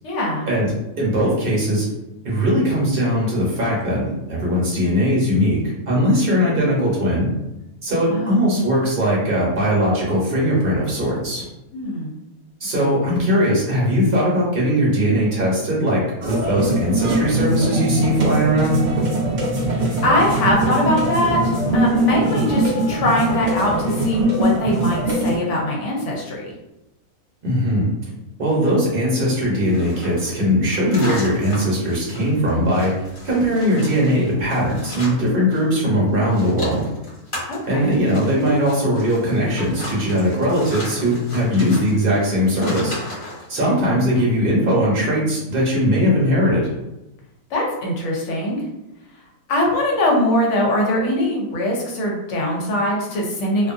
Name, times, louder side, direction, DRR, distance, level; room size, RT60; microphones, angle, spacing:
voice 1, 0.0-0.5 8.1-8.5 11.7-12.2 19.7-26.5 37.5-37.9 43.8-44.3 47.5-48.6 49.5-53.7, left 1 dB, 65° left, -2 dB, 1.0 m, -22 dB
voice 2, 1.0-1.9 2.2-7.3 7.8-11.4 12.6-18.8 27.4-27.9 28.4-36.8 37.7-43.0 43.5-46.7, equal, 45° right, -4 dB, 1.1 m, -19 dB
sound 1, 16.2-25.4, right 1 dB, 60° right, 0.4 m, -21 dB
sound 2, 29.6-35.8 36.0-43.5, left 1 dB, 40° left, 1.1 m, -36 dB
2.6 x 2.5 x 2.5 m, 0.94 s
omnidirectional pair, 1.5 m